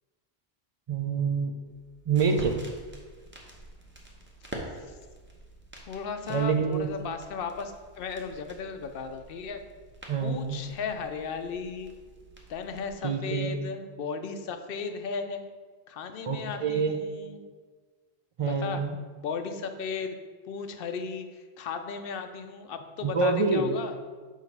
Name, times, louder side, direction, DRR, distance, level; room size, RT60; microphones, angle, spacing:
voice 1, 0.9-1.5 2.1-2.6 6.3-6.9 10.1-10.6 13.0-13.6 16.2-17.1 18.4-18.9 23.0-23.8, right 5 dB, 45° right, 5 dB, 0.4 m, -26 dB
sound 1, 1.6-12.9, right 1 dB, 10° right, 0.8 m, -47 dB
voice 2, 5.9-9.6 10.2-11.9 12.5-15.5 15.9-17.4 18.4-18.8 19.2-20.1 20.4-24.0, left 5 dB, 65° left, 7 dB, 0.7 m, -35 dB
6.4 x 3.0 x 5.3 m, 1.4 s
omnidirectional pair, 1.1 m